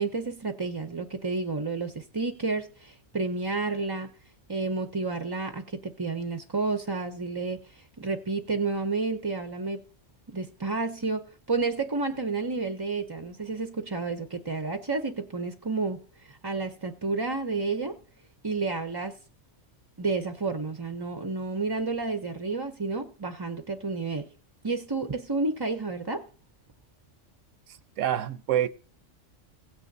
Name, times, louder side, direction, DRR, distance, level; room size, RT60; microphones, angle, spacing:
voice 1, 0.0-4.1 4.5-9.8 10.3-17.9 18.4-19.1 20.0-24.3 24.6-26.2, right 3 dB, 30° right, 0.4 m, -30 dB
voice 2, 27.7-28.7, right 11 dB, 80° right, 1.0 m, -27 dB
16.5 x 8.9 x 2.7 m
omnidirectional pair, 1.3 m